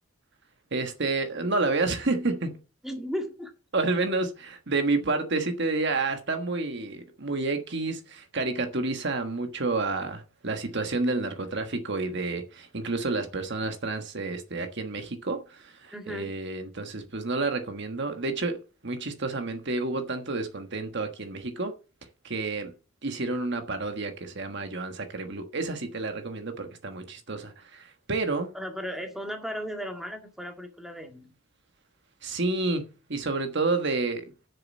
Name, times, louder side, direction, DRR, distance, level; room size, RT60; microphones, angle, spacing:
voice 1, 0.7-2.6 3.7-18.6 18.8-21.7 22.2-22.7 23.0-28.5 32.2-34.2, right 3 dB, 55° right, 1.3 m, -30 dB
voice 2, 2.8-3.5 15.9-16.3 28.5-31.3, equal, ahead, 2.0 m, -35 dB
8.4 x 6.8 x 7.3 m
head